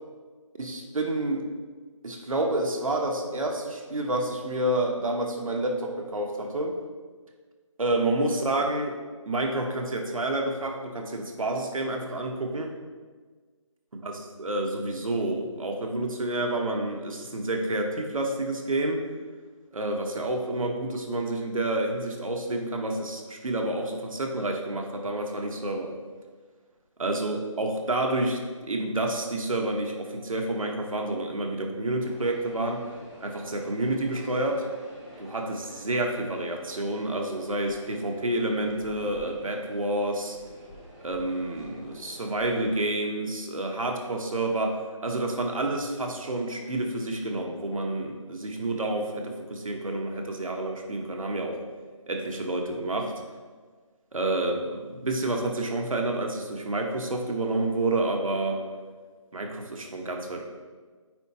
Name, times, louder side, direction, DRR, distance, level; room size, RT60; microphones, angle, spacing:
voice 1, 0.6-1.4 2.0-6.8 7.8-8.9 9.3-12.7 14.0-19.0 19.7-25.9 27.0-28.4 28.7-32.8 33.2-34.6 35.2-40.4 41.0-51.6 52.1-53.1 54.1-58.6 59.3-60.4, right 2 dB, 85° right, 2 dB, 1.2 m, -29 dB
sound 1, 32.0-42.8, equal, 5° left, 0.7 m, -48 dB
9.0 x 4.5 x 2.9 m, 1.5 s
figure-of-eight pair, 170°, 17 cm